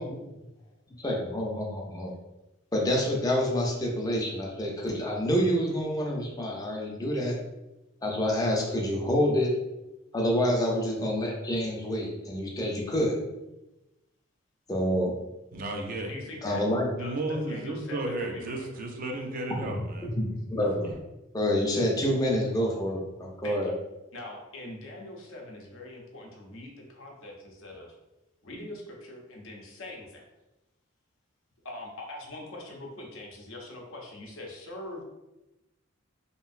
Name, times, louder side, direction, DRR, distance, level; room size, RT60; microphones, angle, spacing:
voice 1, 1.0-2.1 2.7-7.3 8.0-9.5 10.1-13.2 14.7-15.1 16.4-16.9 19.5-19.7 20.0-20.9 21.3-23.7, equal, 20° left, -1 dB, 0.5 m, -27 dB
voice 2, 15.5-16.1 17.0-20.1 20.8-20.9, right 2 dB, 45° right, 2 dB, 0.4 m, -33 dB
voice 3, 16.1-16.6 16.9-18.8 23.4-23.7 24.1-27.9 28.4-30.3 31.6-35.0, left 1 dB, 75° left, 0 dB, 0.7 m, -42 dB
3.0 x 2.6 x 2.4 m, 0.98 s
head